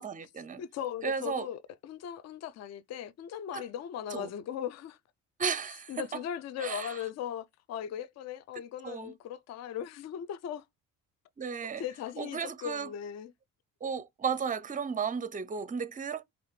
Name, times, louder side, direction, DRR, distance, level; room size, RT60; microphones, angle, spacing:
voice 1, 0.0-0.6 1.0-1.5 3.5-3.7 4.1-4.3 5.4-6.0 6.6-7.0 8.8-9.1 11.4-11.8 12.2-12.9 13.8-16.2, right 6 dB, 20° right, 0.6 m, -34 dB
voice 2, 0.6-5.0 5.9-10.6 11.8-13.3, left 9 dB, 45° left, 0.5 m, -38 dB
4.6 x 2.5 x 3.2 m
hypercardioid pair, 55°, 38 cm